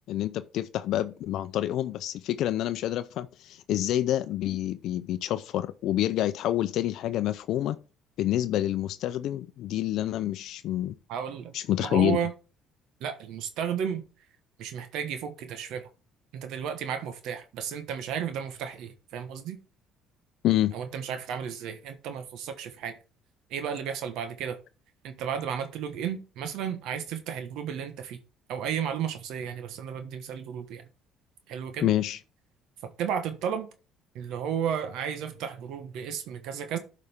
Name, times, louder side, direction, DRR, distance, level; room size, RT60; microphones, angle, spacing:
voice 1, 0.1-7.8 8.2-10.9 11.5-12.2 20.4-20.7 31.8-32.2, left 13 dB, 65° left, 0.5 m, -28 dB
voice 2, 11.1-12.3 13.0-14.0 14.6-15.9 16.3-19.6 20.7-22.9 23.5-24.6 25.0-28.2 28.5-30.8 31.5-31.9 32.8-33.7 34.1-36.8, right 8 dB, 75° right, 1.2 m, -33 dB
12.0 x 5.0 x 3.5 m
cardioid pair, 115°, 0 cm